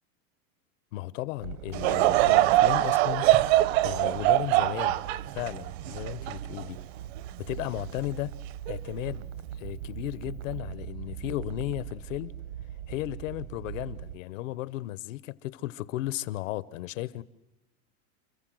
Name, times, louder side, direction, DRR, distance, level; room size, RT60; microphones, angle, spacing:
voice 1, 0.9-3.3 3.8-5.0 5.3-6.8 7.4-8.3 8.7-9.3 9.5-12.3 12.9-17.2, left 16 dB, 75° left, 1.1 m, -35 dB
sound 1, 1.4-14.2, right 11 dB, 75° right, 1.1 m, -41 dB
Laughter / Crowd, 1.7-7.2 7.7-7.8 8.7-8.9, right 16 dB, 55° right, 0.7 m, -23 dB
29.0 x 15.0 x 7.8 m
supercardioid pair, 180°, 39 cm